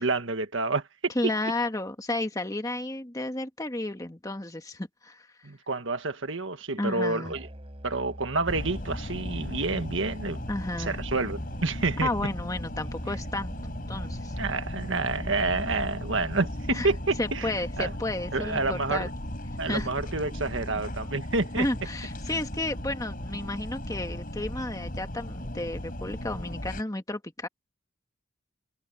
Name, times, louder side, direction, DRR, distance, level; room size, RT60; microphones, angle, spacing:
voice 1, 0.0-1.1 5.4-7.5 7.8-10.4 10.8-12.1 14.4-17.5 17.8-17.9 18.3-19.1 19.6-21.7, right 3 dB, 65° right, 1.6 m, -29 dB
voice 2, 1.1-5.3 6.8-7.3 10.5-11.0 12.0-13.5 13.9-14.4 16.7-16.9 17.2-19.1 19.6-19.9 21.6-27.5, left 2 dB, 15° left, 1.5 m, -32 dB
sound 1, 6.4-9.3 9.6-9.7 10.2-25.0, equal, 5° right, 6.6 m, -57 dB
Musical instrument, 7.2-17.1, equal, 30° right, 4.5 m, -43 dB
sound 2, 8.5-26.8, left 1 dB, 45° left, 4.8 m, -37 dB
head